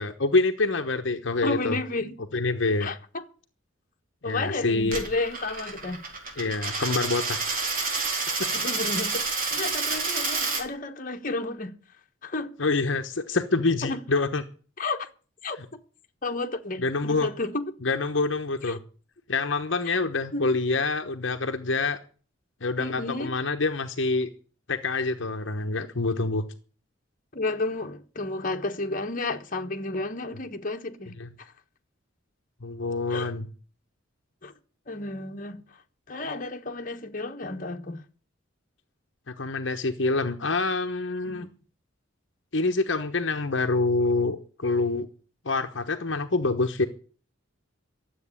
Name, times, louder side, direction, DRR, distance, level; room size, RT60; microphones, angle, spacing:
voice 1, 0.0-1.8 2.3-2.9 4.2-5.0 6.4-7.6 12.6-14.4 16.8-17.3 17.8-18.8 19.3-22.0 22.6-24.3 24.7-26.4 31.2-31.3 32.6-33.5 39.3-41.5 42.5-45.1 45.4-46.9, left 3 dB, 65° left, 1.1 m, -26 dB
voice 2, 1.4-2.1 2.8-3.2 4.2-6.0 8.5-11.7 12.2-12.6 13.8-14.0 14.8-15.1 15.4-15.8 16.2-17.7 18.6-18.8 20.3-20.5 22.8-23.4 27.3-31.5 33.1-33.3 34.4-34.5 34.9-35.6 36.1-38.0 41.3-41.5, left 2 dB, 45° left, 1.4 m, -32 dB
Coin (dropping), 4.8-10.6, right 4 dB, 45° right, 4.2 m, -29 dB
12.5 x 8.1 x 9.8 m
head